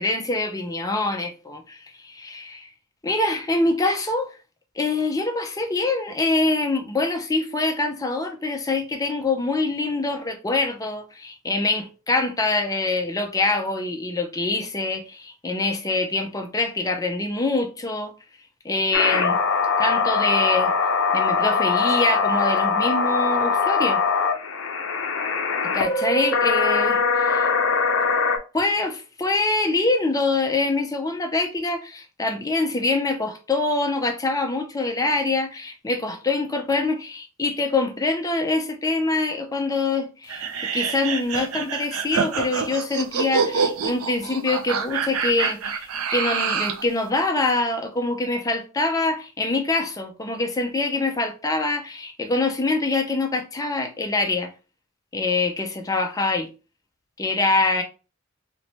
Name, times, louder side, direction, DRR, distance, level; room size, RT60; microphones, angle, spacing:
voice 1, 0.0-2.7 3.0-4.3 4.8-18.1 18.6-19.4 19.8-20.7 21.1-24.0 25.7-27.2 28.5-40.5 40.7-54.5 55.1-56.5 57.2-57.8, left 2 dB, 15° left, 0.6 m, -24 dB
sound 1, 18.9-28.4, left 5 dB, 60° left, 0.6 m, -22 dB
sound 2, 40.3-46.9, right 6 dB, 90° right, 0.5 m, -26 dB
3.3 x 3.0 x 2.8 m
head